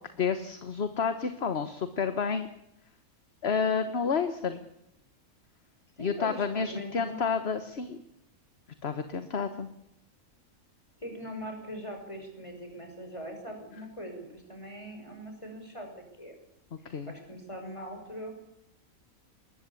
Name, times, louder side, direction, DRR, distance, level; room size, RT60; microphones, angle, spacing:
voice 1, 0.2-2.5 3.4-4.6 6.0-8.0 8.8-9.7 16.8-17.1, left 6 dB, 50° left, 9 dB, 1.5 m, -30 dB
voice 2, 6.0-7.2 11.0-16.4 17.1-18.3, equal, 20° left, 4 dB, 6.2 m, -41 dB
20.5 x 20.5 x 8.5 m, 0.79 s
omnidirectional pair, 1.5 m